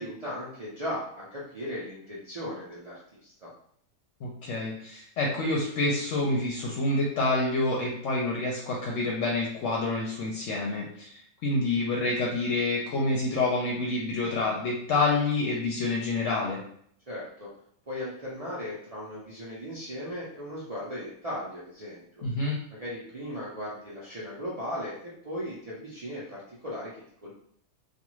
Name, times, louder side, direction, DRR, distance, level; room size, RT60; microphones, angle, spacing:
voice 1, 0.0-3.5 17.1-17.5 17.9-22.2 22.7-27.3, equal, 65° right, -7 dB, 0.3 m, -37 dB
voice 2, 4.2-16.6 22.2-22.6, left 2 dB, 65° left, -3 dB, 0.9 m, -28 dB
2.5 x 2.3 x 3.0 m, 0.66 s
omnidirectional pair, 1.5 m